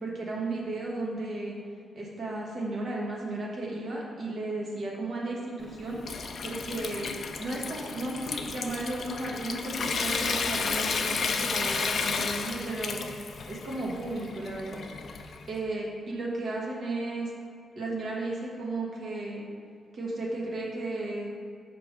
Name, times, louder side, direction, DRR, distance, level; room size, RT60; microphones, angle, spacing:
voice 1, 0.0-1.6 1.9-6.0 6.4-7.1 7.4-13.0 13.5-14.8 15.5-17.3 17.8-19.4 19.9-21.3, right 2 dB, 55° right, -3 dB, 1.2 m, -34 dB
Water tap faucet / Sink (filling or washing) / Trickle dribble, 5.6-15.5, left 5 dB, 50° left, 0.4 m, -33 dB
5.8 x 3.2 x 5.1 m, 2.2 s
wide cardioid pair, 145°, 0 cm